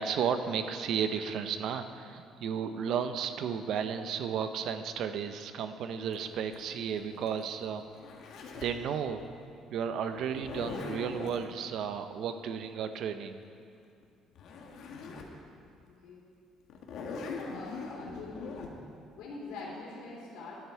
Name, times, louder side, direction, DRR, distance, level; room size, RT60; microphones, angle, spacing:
voice 1, 0.0-7.8 8.6-9.2 9.7-13.4, right 7 dB, 50° right, 9 dB, 0.6 m, -33 dB
Zipper (clothing), 6.1-8.8 10.2-11.4 14.0-14.1 14.3-15.4 15.8-15.9 16.7-18.7, left 4 dB, 55° left, 1.2 m, -41 dB
voice 2, 15.9-16.3 17.1-18.7 19.1-20.6, left 3 dB, 85° left, -7 dB, 2.9 m, -44 dB
12.0 x 10.0 x 4.6 m, 2.4 s
cardioid pair, 175°, 0 cm